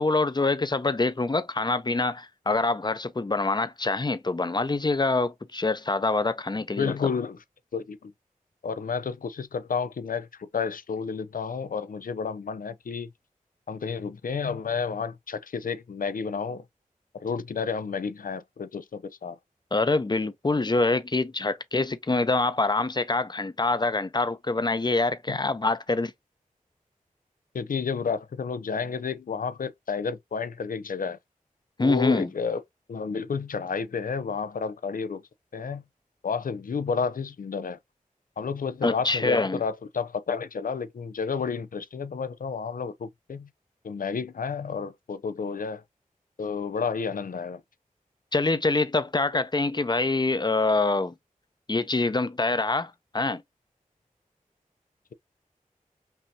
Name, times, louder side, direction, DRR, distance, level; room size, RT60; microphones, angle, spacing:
voice 1, 0.0-6.9 19.7-26.1 31.8-32.3 38.8-39.6 48.3-51.1 51.7-53.4, left 3 dB, 30° left, 0.7 m, -25 dB
voice 2, 6.8-7.4 7.7-8.1 8.6-13.1 13.7-16.6 17.2-19.4 25.3-25.4 27.5-31.2 31.8-32.6 32.9-35.2 35.5-35.8 36.2-37.8 38.4-43.5 43.8-45.8 46.4-47.6, left 5 dB, 75° left, 0.6 m, -31 dB
5.5 x 2.8 x 2.8 m
cardioid pair, 40°, 14 cm